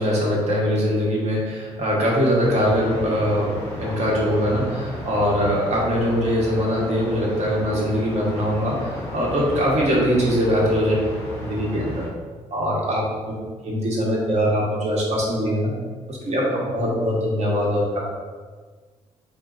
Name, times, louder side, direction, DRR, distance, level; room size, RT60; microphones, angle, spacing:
voice 1, 0.0-10.9 11.5-12.0 12.5-13.0 13.6-15.7 16.1-18.0, equal, 55° right, -4 dB, 1.1 m, -22 dB
sound 1, 2.4-12.1, left 1 dB, 20° left, 1.0 m, -34 dB
3.8 x 2.1 x 3.9 m, 1.5 s
cardioid pair, 105°, 13 cm